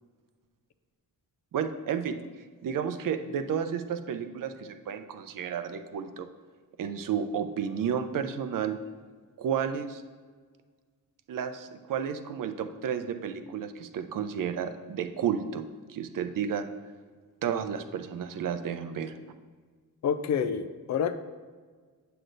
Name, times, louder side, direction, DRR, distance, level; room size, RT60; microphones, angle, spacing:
voice 1, 1.5-2.2 2.6-6.3 6.8-8.8 9.4-10.0 11.3-15.6 15.9-16.7 17.4-19.1, right 7 dB, 60° right, 8 dB, 0.6 m, -32 dB
voice 2, 20.0-21.1, left 7 dB, 50° left, 11 dB, 0.5 m, -28 dB
7.8 x 7.7 x 2.6 m, 1.5 s
cardioid pair, 125°, 36 cm